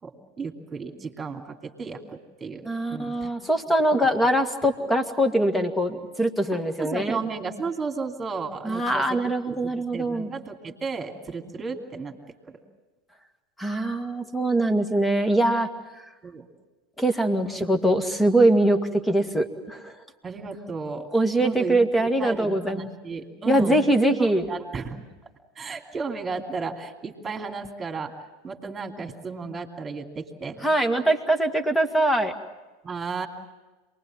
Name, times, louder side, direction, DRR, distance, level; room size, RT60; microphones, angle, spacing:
voice 1, 0.0-3.3 6.5-9.2 9.4-12.1 12.5-12.6 16.2-16.5 17.4-17.7 20.2-21.1 21.4-23.8 24.2-25.0 25.5-28.1 28.4-30.6 32.8-33.3, right 4 dB, 20° right, 4 dB, 2.8 m, -34 dB
voice 2, 2.6-7.2 8.6-10.3 13.6-15.7 17.0-18.8 19.0-19.9 21.1-22.9 23.5-24.5 30.6-32.3, right 1 dB, 5° left, 8 dB, 2.0 m, -22 dB
27.5 x 21.0 x 7.5 m, 1.2 s
figure-of-eight pair, 85°, 0 cm